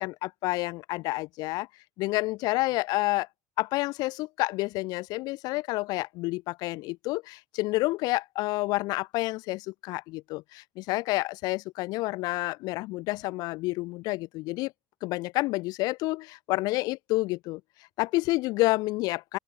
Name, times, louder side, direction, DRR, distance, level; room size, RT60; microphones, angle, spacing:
voice 1, 0.0-1.7 2.0-3.3 3.6-14.7 15.0-17.6 18.0-19.4, left 21 dB, 60° left, 2.8 m, -29 dB
open air
cardioid pair, 150°, 8 cm